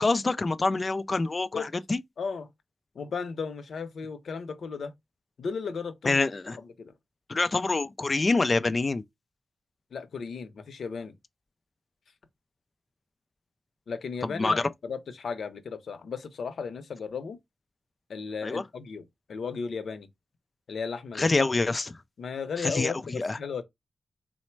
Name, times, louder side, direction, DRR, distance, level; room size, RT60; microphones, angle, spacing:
voice 1, 0.0-2.0 6.0-6.6 7.3-9.0 14.2-14.7 18.4-18.6 21.2-22.0 22.6-23.4, left 3 dB, 30° left, 0.3 m, -26 dB
voice 2, 2.2-2.5 2.9-4.9 5.4-6.2 6.8-6.9 9.9-11.1 13.9-17.4 18.1-19.0 19.3-20.1 20.7-21.3 22.2-23.6, left 5 dB, 85° left, 0.7 m, -35 dB
4.0 x 2.1 x 4.4 m
wide cardioid pair, 165°, 0 cm